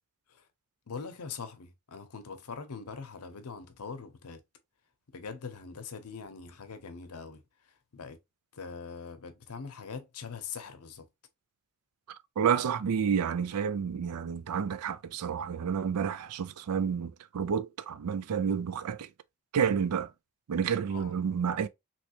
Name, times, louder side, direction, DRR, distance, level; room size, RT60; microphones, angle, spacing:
voice 1, 0.9-4.4 5.1-8.2 8.5-11.1 20.9-21.1, left 5 dB, 85° left, 0.7 m, -42 dB
voice 2, 12.1-19.1 19.5-20.1 20.5-21.7, right 7 dB, 90° right, 0.4 m, -30 dB
3.2 x 2.9 x 2.8 m
head